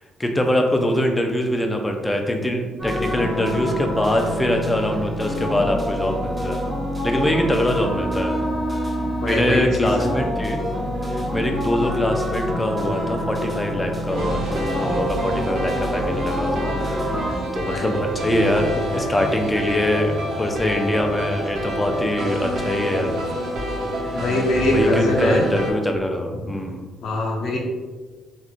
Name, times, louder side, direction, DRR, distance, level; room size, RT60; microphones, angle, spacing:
voice 1, 0.2-6.6 7.0-8.3 9.2-10.6 11.1-23.1 24.0-24.3 24.7-26.9, left 1 dB, 15° left, 3 dB, 0.4 m, -23 dB
sound 1, 2.8-17.3, equal, 15° right, 0.9 m, -26 dB
voice 2, 9.2-10.2 11.2-11.3 17.6-17.9 24.1-25.5 27.0-27.6, left 1 dB, 70° left, -1 dB, 0.7 m, -23 dB
sound 2, 14.1-25.7, right 1 dB, 80° right, 0.8 m, -27 dB
3.5 x 2.4 x 2.5 m, 1.4 s
cardioid pair, 90°, 0 cm